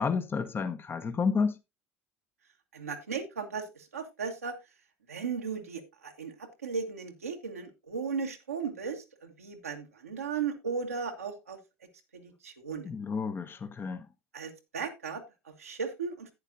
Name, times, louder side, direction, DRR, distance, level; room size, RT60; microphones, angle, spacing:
voice 1, 0.0-1.6 12.8-14.1, left 5 dB, 30° left, 1.1 m, -30 dB
voice 2, 2.7-4.6 5.1-11.6 12.1-12.9 14.3-16.3, right 5 dB, 85° right, 1.6 m, -36 dB
11.5 x 9.4 x 2.7 m
figure-of-eight pair, 65°, 7 cm